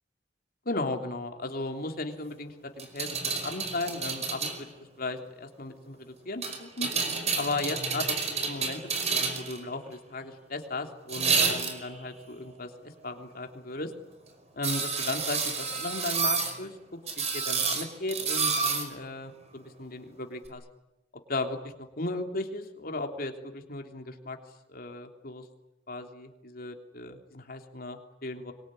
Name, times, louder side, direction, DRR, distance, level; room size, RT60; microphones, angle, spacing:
voice 1, 0.6-4.7 5.0-6.0 6.2-6.9 7.3-12.7 13.0-13.9 14.5-16.7 17.2-20.6 21.3-24.4 24.7-25.4 25.9-28.5, left 2 dB, 55° left, 4 dB, 3.3 m, -36 dB
sound 1, 2.8-4.6 6.4-9.6 11.1-12.0 14.6-16.5 17.1-18.9 20.4-20.5, right 5 dB, 40° right, 5.1 m, -29 dB
25.5 x 23.0 x 10.0 m, 0.91 s
head